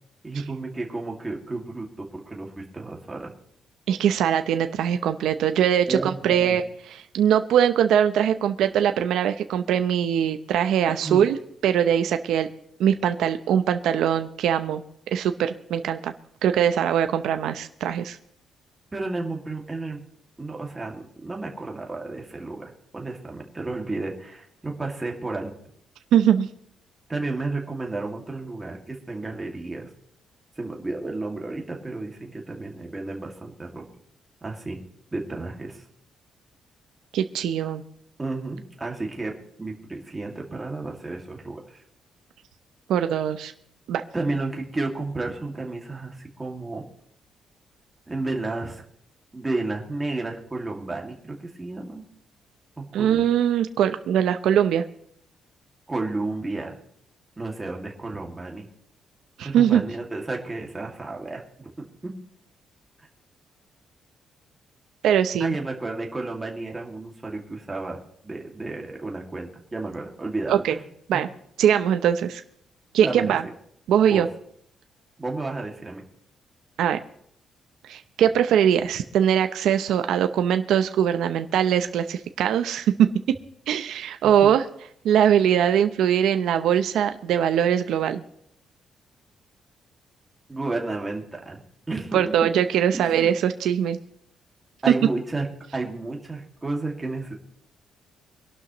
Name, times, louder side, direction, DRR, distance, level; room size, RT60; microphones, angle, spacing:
voice 1, 0.2-3.3 5.9-6.6 10.9-11.2 18.9-20.0 20.4-25.5 27.1-29.9 30.6-33.8 34.4-34.8 35.1-35.8 38.2-41.6 44.1-46.8 48.1-48.8 49.3-52.0 52.8-53.2 55.9-56.7 57.4-58.7 59.4-61.7 62.0-62.1 65.4-68.0 68.2-70.8 73.0-73.3 74.1-74.2 75.2-76.0 84.4-84.5 90.5-91.6 91.9-92.5 92.9-93.3 94.8-95.5 95.7-97.3, right 2 dB, 15° right, 0 dB, 2.2 m, -32 dB
voice 2, 3.9-6.6 7.1-11.4 11.6-12.5 12.8-14.8 15.1-16.1 16.4-18.2 26.1-26.5 37.1-37.8 42.9-43.5 43.9-44.0 52.9-54.8 59.4-59.8 65.0-65.6 70.5-70.7 71.1-71.3 71.6-72.4 72.9-73.4 73.9-74.3 76.8-77.0 77.9-82.9 83.7-84.6 85.0-88.2 92.1-94.0, right 9 dB, 80° right, 8 dB, 0.7 m, -21 dB
23.5 x 12.0 x 3.1 m, 0.69 s
cardioid pair, 175°, 0 cm